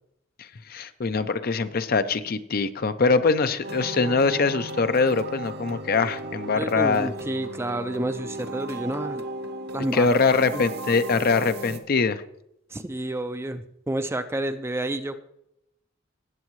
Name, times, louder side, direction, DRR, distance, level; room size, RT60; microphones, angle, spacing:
voice 1, 0.4-7.1 9.9-12.2, left 4 dB, 50° left, 11 dB, 0.6 m, -23 dB
sound 1, 3.6-11.8, right 1 dB, 55° right, 1.0 m, -36 dB
voice 2, 6.5-9.2 9.7-10.1 10.5-10.6 12.7-15.2, right 1 dB, 15° right, 9 dB, 0.5 m, -29 dB
18.5 x 8.3 x 3.1 m, 0.79 s
head